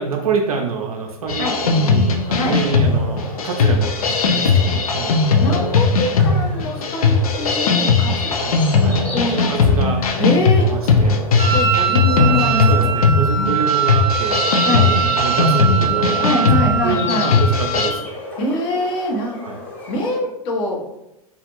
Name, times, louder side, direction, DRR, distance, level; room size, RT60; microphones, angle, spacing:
voice 1, 0.0-5.2 6.4-6.7 8.4-9.0 9.3-10.3 10.6-11.2 12.7-14.5 14.8-16.5 16.8-18.1 19.4-19.6, right 5 dB, 75° right, 2 dB, 0.4 m, -26 dB
sound 1, 1.3-17.9, left 4 dB, 70° left, 0.4 m, -18 dB
sound 2, 1.4-20.2, left 2 dB, 10° left, 0.7 m, -33 dB
voice 2, 5.4-8.3 9.1-9.7 10.2-10.7 11.5-12.9 13.4-13.5 14.6-14.9 16.2-17.3 18.4-19.4 19.9-20.8, left 1 dB, 45° left, -1 dB, 0.8 m, -24 dB
Wind instrument woodwind instrument, 11.4-18.0, right 7 dB, 50° right, 0.9 m, -22 dB
2.4 x 2.3 x 2.9 m, 0.88 s
figure-of-eight pair, 90°, 19 cm